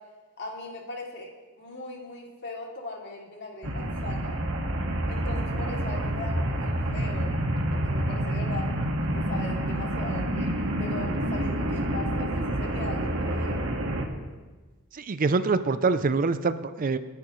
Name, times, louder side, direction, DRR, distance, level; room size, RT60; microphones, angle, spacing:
voice 1, 0.4-1.3 1.6-4.4 5.1-7.3 7.7-8.8 9.1-13.7, left 2 dB, 50° left, -1 dB, 2.7 m, -39 dB
sound 1, 3.6-14.1, right 1 dB, 65° right, 1.8 m, -28 dB
voice 2, 14.9-17.0, right 4 dB, 40° right, 12 dB, 0.5 m, -25 dB
28.5 x 10.5 x 3.2 m, 1.3 s
head